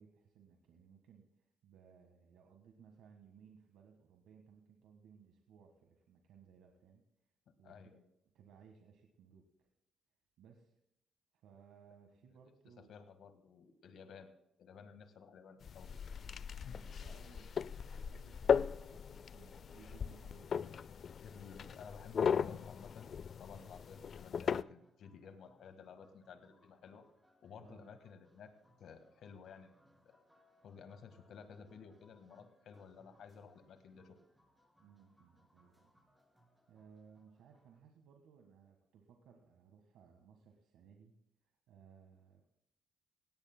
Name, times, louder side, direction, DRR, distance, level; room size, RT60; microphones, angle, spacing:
voice 1, 0.0-7.0 7.6-7.9 8.3-9.7 10.4-10.7 11.4-12.9 16.7-20.8 23.5-23.7 27.6-27.9 34.8-35.9 36.7-41.2 41.4-42.5, right 6 dB, 85° right, 2 dB, 1.5 m, -62 dB
voice 2, 7.6-8.0 12.9-14.3 14.6-15.9 16.6-16.9 21.2-23.1 23.4-27.0 27.4-28.5 28.8-29.7 30.0-30.2 30.6-34.2, left 6 dB, 70° left, 8 dB, 1.6 m, -54 dB
sound 1, 15.6-24.6, left 7 dB, 55° left, 0.4 m, -37 dB
sound 2, 21.4-37.8, equal, 5° right, 5.1 m, -71 dB
18.5 x 17.5 x 2.2 m, 0.80 s
cardioid pair, 90°, 0 cm